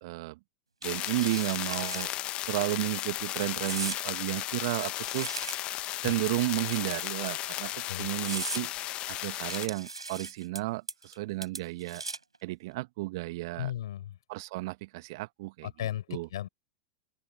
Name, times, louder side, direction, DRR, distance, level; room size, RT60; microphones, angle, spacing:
voice 1, 0.0-0.4 0.8-2.1 2.5-5.3 6.0-7.7 8.0-8.7 9.1-12.0 12.4-13.7 14.3-15.7 16.1-16.3, right 21 dB, 55° right, 1.1 m, -33 dB
sound 1, 0.8-9.7, left 15 dB, 40° left, 1.4 m, -35 dB
sound 2, 0.8-2.1 2.5-2.7 3.6-4.0 4.7-5.8 6.7-7.3 7.8-7.9 8.2-8.6 9.5-10.6 10.9-11.2 11.4-12.4, right 3 dB, 85° right, 5.1 m, -39 dB
voice 2, 13.6-14.2 15.6-16.5, left 12 dB, 65° left, 5.6 m, -35 dB
open air
figure-of-eight pair, 85°, 3 cm